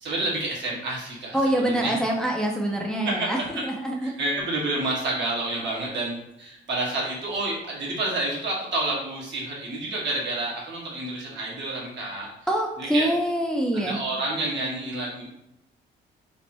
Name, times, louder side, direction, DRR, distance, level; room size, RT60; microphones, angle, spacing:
voice 1, 0.0-2.0 3.0-3.3 4.0-12.3 12.8-13.1 13.7-15.3, right 2 dB, 65° right, -4 dB, 1.4 m, -29 dB
voice 2, 1.3-4.1 12.5-14.0, right 1 dB, 5° left, 0 dB, 0.5 m, -25 dB
3.3 x 2.1 x 4.2 m, 0.83 s
cardioid pair, 90°, 20 cm